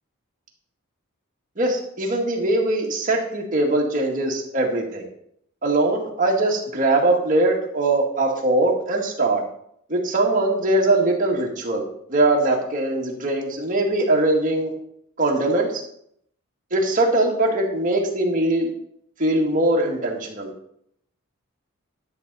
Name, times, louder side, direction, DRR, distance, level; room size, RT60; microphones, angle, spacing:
voice 1, 1.6-5.0 5.6-9.4 9.9-11.8 12.1-14.7 15.2-15.8 16.7-18.7 19.2-20.5, right 2 dB, 40° right, -1 dB, 1.9 m, -21 dB
11.5 x 6.4 x 4.1 m, 0.71 s
head